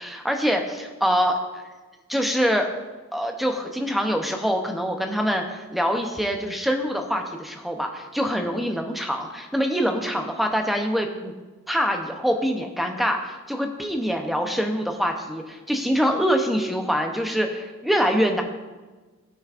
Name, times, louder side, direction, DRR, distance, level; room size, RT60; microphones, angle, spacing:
voice 1, 0.0-1.6 2.1-2.7 3.1-11.3 11.7-18.4, equal, ahead, 3 dB, 0.7 m, -24 dB
18.0 x 6.2 x 2.5 m, 1.3 s
head